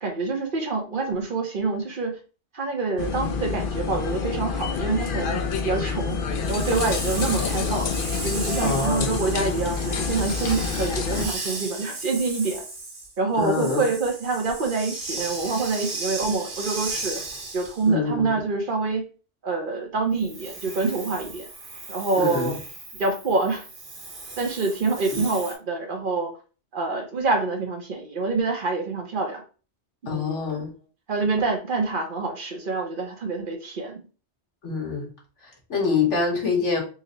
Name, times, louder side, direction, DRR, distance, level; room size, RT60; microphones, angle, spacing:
voice 1, 0.0-2.2 2.5-6.2 6.5-7.9 8.2-12.7 13.2-17.2 17.5-19.0 19.4-21.5 21.9-22.5 23.0-23.7 24.4-26.3 26.7-29.4 30.0-30.4 31.1-34.0, right 3 dB, 50° right, 3 dB, 0.8 m, -26 dB
sound 1, 3.0-11.3, left 5 dB, 60° left, 0.6 m, -27 dB
Hiss, 6.4-17.9 20.1-25.5, right 2 dB, 70° right, 1.5 m, -36 dB
voice 2, 8.6-9.1 13.4-13.9 17.9-18.4 22.2-22.6 30.1-30.7 34.6-35.1 35.4-36.8, left 4 dB, 80° left, -2 dB, 1.6 m, -25 dB
4.0 x 2.1 x 3.8 m, 0.36 s
omnidirectional pair, 1.2 m